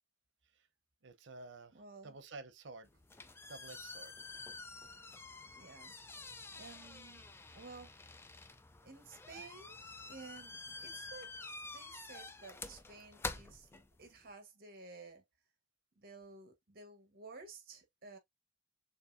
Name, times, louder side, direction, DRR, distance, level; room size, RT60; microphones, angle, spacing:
voice 1, 1.0-1.7 2.0-2.9 3.5-4.1, right 3 dB, 80° right, 0.8 m, -50 dB
voice 2, 1.7-2.2 5.5-5.9 6.2-7.3 7.5-7.9 8.8-9.8 10.1-11.3 11.7-15.2 15.9-18.2, right 4 dB, 55° right, 1.3 m, -53 dB
sound 1, 2.8-14.3, left 3 dB, 15° left, 0.4 m, -48 dB
6.6 x 2.6 x 2.6 m
head